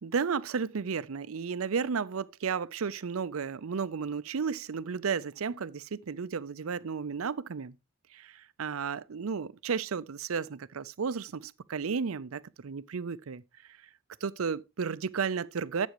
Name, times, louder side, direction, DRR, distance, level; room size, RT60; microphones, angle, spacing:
voice 1, 0.0-7.7 8.1-8.3 8.6-13.4 14.2-15.9, right 6 dB, 80° right, 0.5 m, -33 dB
11.5 x 8.4 x 3.0 m
head